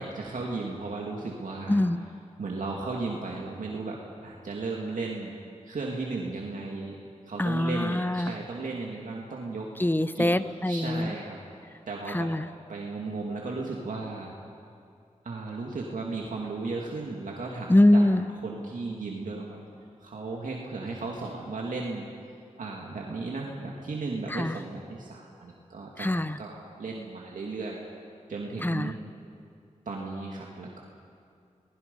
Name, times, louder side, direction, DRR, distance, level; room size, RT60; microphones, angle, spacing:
voice 1, 0.0-1.8 2.4-5.3 5.7-7.0 7.3-9.7 10.1-10.3 10.7-11.4 11.9-12.3 12.7-14.3 15.2-18.1 18.4-19.6 20.0-22.1 22.6-27.8 28.3-29.0 29.9-30.8, right 3 dB, 80° right, -2 dB, 2.3 m, -35 dB
voice 2, 1.7-2.0 7.4-8.3 9.8-11.1 12.1-12.5 17.7-18.3 24.3-24.5 26.0-26.4 28.6-28.9, left 1 dB, 15° left, 13 dB, 0.9 m, -23 dB
27.5 x 20.5 x 5.5 m, 2.4 s
cardioid pair, 50°, 13 cm